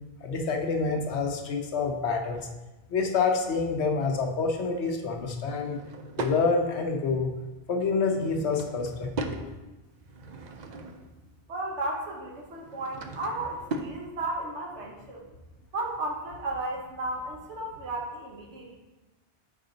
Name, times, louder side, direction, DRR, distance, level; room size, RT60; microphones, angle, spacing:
voice 1, 0.2-2.5 2.9-5.8 6.2-7.3 7.7-9.4, left 4 dB, 75° left, 3 dB, 1.1 m, -27 dB
Drawer open or close / Wood, 5.5-6.4 8.1-9.5 10.0-11.1 12.5-14.0, right 3 dB, 55° right, 0.5 m, -38 dB
voice 2, 11.5-15.2 15.7-18.8, right 2 dB, 85° right, -1 dB, 1.3 m, -34 dB
6.0 x 5.1 x 3.9 m, 1.1 s
omnidirectional pair, 1.1 m